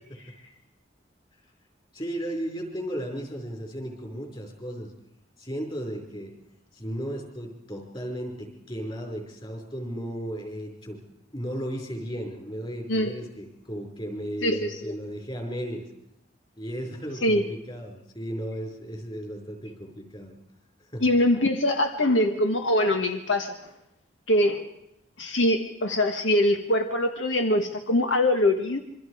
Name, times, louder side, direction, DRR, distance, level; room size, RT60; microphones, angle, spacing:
voice 1, 1.9-4.9 5.4-6.3 6.7-11.0 11.3-15.9 16.6-20.4 20.8-21.0, equal, 25° left, 2 dB, 5.3 m, -35 dB
voice 2, 14.4-14.9 17.2-17.4 21.0-23.7 24.3-24.6 25.2-28.8, left 1 dB, 85° left, 6 dB, 1.5 m, -23 dB
27.0 x 24.5 x 5.0 m, 0.82 s
head